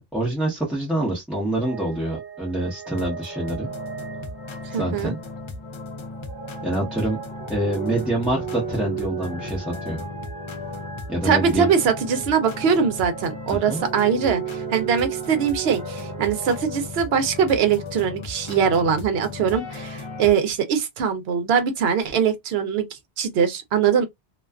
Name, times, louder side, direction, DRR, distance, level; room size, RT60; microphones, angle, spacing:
voice 1, 0.0-3.7 4.7-5.2 6.6-7.2 7.5-10.0 11.1-11.7 13.5-13.8, right 1 dB, ahead, 0.7 m, -26 dB
sound 1, 1.6-5.4 6.0-16.6, right 11 dB, 50° right, 1.1 m, -36 dB
sound 2, 2.8-20.3, left 4 dB, 50° left, 0.3 m, -36 dB
voice 2, 4.7-5.1 11.2-24.1, right 7 dB, 80° right, 0.8 m, -22 dB
2.4 x 2.3 x 2.3 m
omnidirectional pair, 1.0 m